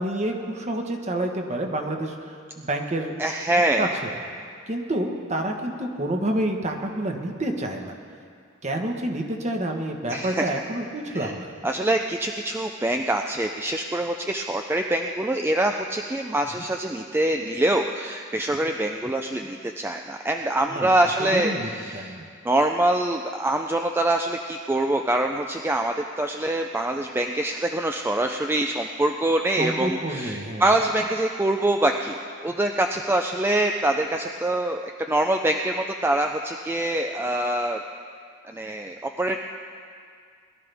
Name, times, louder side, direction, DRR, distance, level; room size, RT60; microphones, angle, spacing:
voice 1, 0.0-3.2 3.8-4.1 4.7-8.0 8.6-11.5 20.7-20.9 21.3-22.2 29.6-30.7, right 1 dB, 35° right, 3 dB, 1.2 m, -28 dB
voice 2, 3.2-3.9 10.1-10.5 11.1-11.3 11.6-22.2 22.4-34.8 35.1-37.8 38.4-39.4, right 1 dB, 10° right, 3 dB, 0.4 m, -24 dB
21.0 x 12.0 x 3.5 m, 2.2 s
head